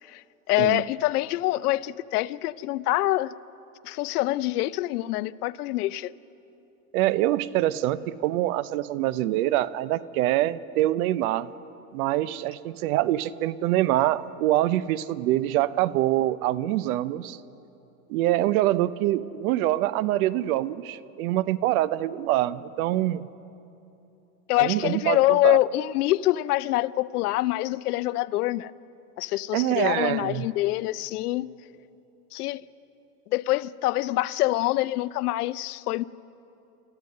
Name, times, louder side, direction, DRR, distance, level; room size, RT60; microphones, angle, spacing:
voice 1, 0.1-3.3 3.8-6.1 24.5-28.7 29.2-31.5 32.3-32.6 33.3-36.0, left 16 dB, 80° left, 0.7 m, -25 dB
voice 2, 6.9-11.5 11.9-17.4 18.1-23.2 24.6-25.6 29.5-30.5, right 14 dB, 70° right, 0.8 m, -25 dB
28.0 x 14.0 x 6.6 m
supercardioid pair, 110°, 45 cm